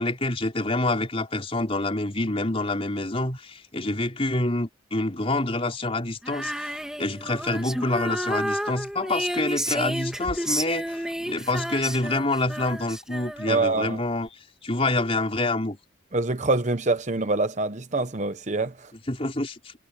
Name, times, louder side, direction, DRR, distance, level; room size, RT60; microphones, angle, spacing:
voice 1, 0.0-14.3 14.6-15.8 19.1-19.7, left 2 dB, 30° left, 4.2 m, -27 dB
Female singing, 6.2-13.7, equal, 5° right, 3.0 m, -31 dB
voice 2, 13.5-14.0 16.1-18.9, right 3 dB, 35° right, 0.9 m, -25 dB
head